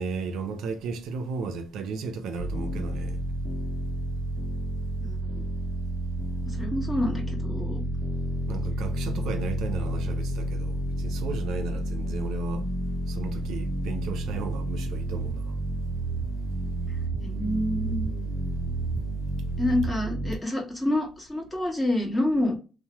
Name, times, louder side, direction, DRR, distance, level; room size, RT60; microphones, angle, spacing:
voice 1, 0.0-3.2 8.5-12.7 13.1-15.6 17.3-17.4, right 4 dB, 85° right, 0.5 m, -34 dB
sound 1, 2.4-20.4, right 1 dB, 80° left, 0.7 m, -30 dB
voice 2, 5.0-5.4 6.4-7.8 17.2-18.1 19.6-22.6, left 1 dB, 15° left, 1.2 m, -28 dB
2.8 x 2.0 x 2.9 m
cardioid pair, 90°, 0 cm